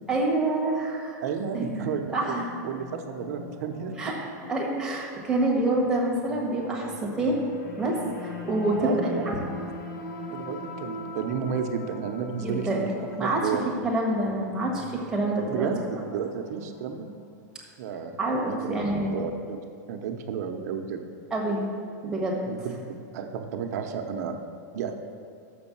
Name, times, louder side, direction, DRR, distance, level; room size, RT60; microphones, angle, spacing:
voice 1, 0.1-1.2 1.5-2.5 4.0-4.1 4.5-7.3 7.8-9.0 9.3-9.6 12.4-12.9 13.2-13.4 13.6-15.7 18.2-19.1 21.3-21.7 22.0-22.4, right 2 dB, 5° right, -3 dB, 1.4 m, -27 dB
voice 2, 1.2-4.0 8.8-9.3 10.3-12.9 13.2-13.6 15.5-17.1 17.8-18.8 19.1-19.6 19.9-21.0 22.4-24.4 24.7-24.9, right 7 dB, 60° right, 5 dB, 0.8 m, -32 dB
sound 1, 1.7-17.1, left 2 dB, 55° left, 1.2 m, -42 dB
6.8 x 5.4 x 7.1 m, 2.3 s
supercardioid pair, 155°, 10 cm